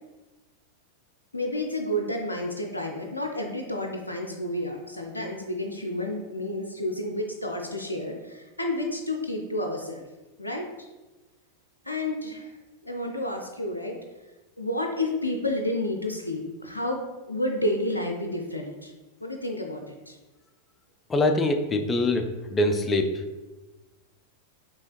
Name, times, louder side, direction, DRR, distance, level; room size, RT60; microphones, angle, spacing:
voice 1, 1.3-10.1 10.4-10.9 11.8-12.5 12.8-14.0 14.6-18.9 19.2-20.2, left 1 dB, 80° left, 2 dB, 0.4 m, -30 dB
voice 2, 21.1-22.2 22.5-23.2, left 2 dB, 20° left, 6 dB, 0.4 m, -23 dB
5.5 x 2.9 x 2.4 m, 1.1 s
figure-of-eight pair, 90°, 0 cm